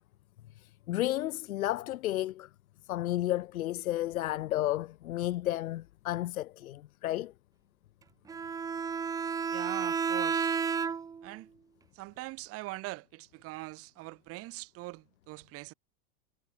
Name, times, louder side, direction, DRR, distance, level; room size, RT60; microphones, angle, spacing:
voice 1, 0.6-2.5 2.9-7.3, left 14 dB, 85° left, 1.5 m, -32 dB
Bowed string instrument, 8.3-11.3, right 6 dB, 10° right, 0.9 m, -31 dB
voice 2, 9.5-10.6 11.2-11.5 11.9-15.7, right 21 dB, 35° right, 7.8 m, -42 dB
supercardioid pair, 165°, 41 cm